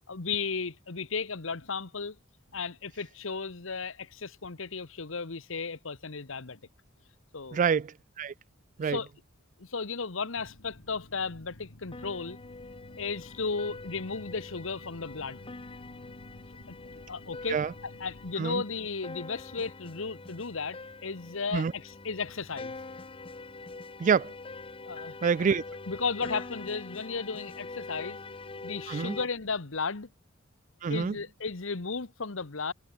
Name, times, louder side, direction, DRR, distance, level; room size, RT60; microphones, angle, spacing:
voice 1, 0.1-2.1 2.5-6.6 7.3-7.6 8.8-9.1 9.6-12.4 13.0-15.4 17.1-22.7 24.9-25.2 25.9-28.2 28.6-30.1 30.9-32.7, left 4 dB, 70° left, 1.3 m, -35 dB
voice 2, 7.5-8.3 8.8-9.0 17.5-17.7 18.4-18.6 21.5-21.7 24.0-24.3 25.2-25.6 28.9-29.2 30.8-31.1, right 6 dB, 40° right, 0.3 m, -27 dB
sound 1, 10.3-18.4, left 1 dB, 85° left, 2.1 m, -53 dB
sound 2, 11.9-29.3, left 3 dB, 25° left, 0.9 m, -44 dB
head